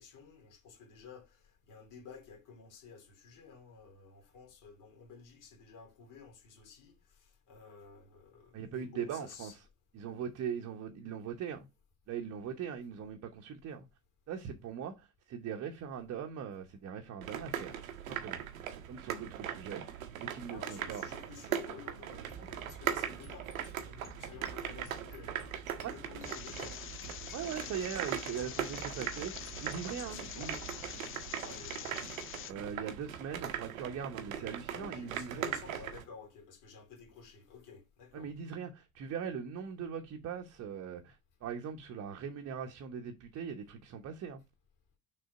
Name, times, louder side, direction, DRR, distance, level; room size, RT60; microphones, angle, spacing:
voice 1, 0.0-9.6 20.5-25.4 25.8-26.8 30.1-30.6 31.4-32.0 34.7-38.3, left 6 dB, 45° left, 2.8 m, -53 dB
voice 2, 8.5-9.5 9.9-11.7 12.1-13.9 14.3-17.8 18.1-18.4 18.9-21.0 22.4-22.5 25.8-25.9 27.3-30.6 32.5-35.5 38.1-44.4, right 7 dB, 35° right, 1.1 m, -41 dB
sound 1, 17.2-36.0, right 9 dB, 70° right, 1.0 m, -40 dB
sound 2, 22.3-30.9, right 2 dB, 15° left, 2.9 m, -52 dB
sound 3, 26.2-32.5, left 11 dB, 30° left, 0.6 m, -46 dB
6.4 x 3.8 x 4.8 m
figure-of-eight pair, 60°, 42 cm